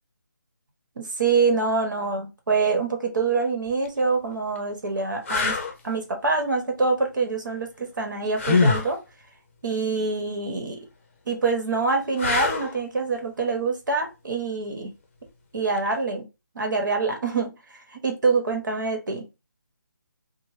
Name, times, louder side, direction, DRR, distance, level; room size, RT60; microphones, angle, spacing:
voice 1, 1.0-5.6 5.8-9.0 9.6-10.8 11.3-14.9 15.5-16.3 16.5-19.3, right 4 dB, 65° right, 4 dB, 1.2 m, -25 dB
sound 1, 3.7-3.9 4.6-4.7 5.3-5.7 8.4-8.9 12.2-12.8 15.7-15.9, left 4 dB, 35° left, 0.6 m, -23 dB
2.8 x 2.2 x 3.1 m, 0.26 s
figure-of-eight pair, 160°, 11 cm